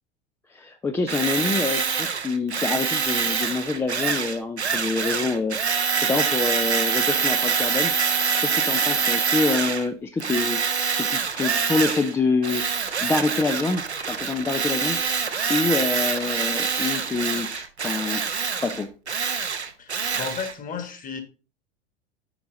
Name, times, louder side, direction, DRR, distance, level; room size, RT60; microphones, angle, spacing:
voice 1, 0.5-5.6 6.0-7.9 8.4-10.7 11.0-12.7 13.0-15.0 15.5-18.3 18.6-18.9, left 3 dB, 10° left, 7 dB, 0.4 m, -26 dB
Tools, 1.1-9.9 10.2-12.1 12.4-20.5, right 6 dB, 85° right, 0.9 m, -25 dB
voice 2, 19.8-21.2, left 6 dB, 25° left, 8 dB, 1.5 m, -33 dB
9.7 x 4.6 x 3.8 m, 0.36 s
figure-of-eight pair, 85°, 32 cm